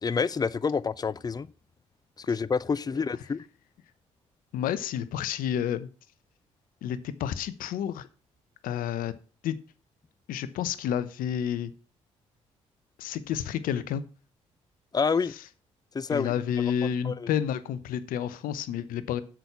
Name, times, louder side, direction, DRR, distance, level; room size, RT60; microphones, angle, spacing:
voice 1, 0.0-1.5 2.3-3.4 14.9-15.3 15.9-16.3 17.0-17.3, left 5 dB, 25° left, 0.6 m, -27 dB
voice 2, 4.5-5.9 6.8-8.1 8.6-9.1 9.4-9.6 10.3-11.7 13.0-14.0 15.3-15.4 16.1-19.2, left 9 dB, 70° left, 0.9 m, -30 dB
7.9 x 6.2 x 6.8 m
hypercardioid pair, 50°, 15 cm